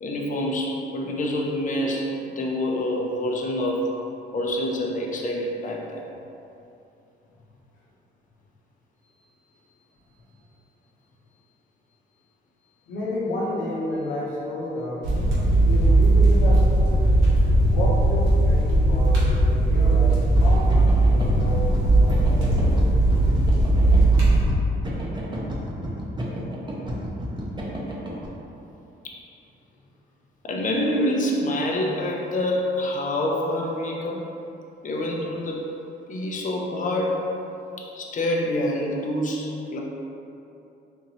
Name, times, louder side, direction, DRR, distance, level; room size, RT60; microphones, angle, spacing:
voice 1, 0.0-3.9 4.3-6.0 29.0-29.2 30.4-34.3 34.8-35.7 36.1-37.2 37.8-39.8, left 1 dB, 40° left, -1 dB, 0.6 m, -26 dB
voice 2, 12.9-15.1 15.6-17.1 17.6-22.9, left 1 dB, 80° left, -5 dB, 1.0 m, -31 dB
sound 1, 15.0-24.4, right 2 dB, 75° right, 1.2 m, -18 dB
sound 2, 20.2-28.3, equal, 25° right, 0.7 m, -32 dB
4.4 x 2.6 x 2.9 m, 2.8 s
cardioid pair, 90°, 20 cm